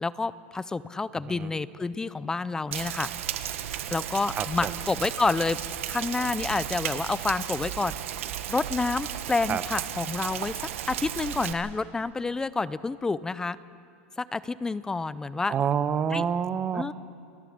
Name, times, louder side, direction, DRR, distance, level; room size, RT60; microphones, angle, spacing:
voice 1, 0.0-3.1 3.9-5.6 5.9-7.9 8.5-10.6 10.9-13.6 14.2-15.5 16.1-16.2 16.7-16.9, left 3 dB, 10° left, 17 dB, 0.4 m, -29 dB
Rain, 2.7-11.5, right 11 dB, 85° right, 1.3 m, -34 dB
voice 2, 4.4-4.8 9.5-9.6 15.5-16.8, right 7 dB, 20° right, 13 dB, 0.8 m, -27 dB
29.5 x 11.0 x 8.6 m, 2.5 s
supercardioid pair, 150°, 7 cm